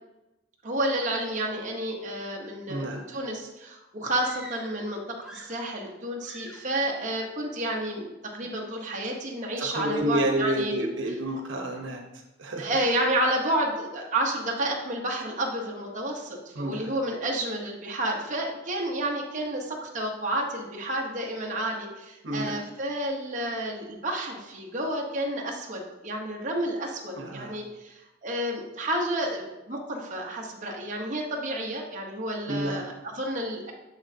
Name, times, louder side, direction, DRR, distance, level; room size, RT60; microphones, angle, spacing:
voice 1, 0.6-10.7 12.6-33.7, right 1 dB, 40° right, -1 dB, 1.0 m, -30 dB
voice 2, 2.7-3.0 9.6-12.0 12.4-12.8 16.5-16.9 22.2-22.6 27.2-27.6 32.5-32.9, right 1 dB, 85° right, 2 dB, 0.9 m, -29 dB
sound 1, 4.1-4.9 5.2-5.9 6.2-6.8, right 1 dB, 5° right, 0.9 m, -47 dB
7.1 x 6.2 x 2.7 m, 1.0 s
head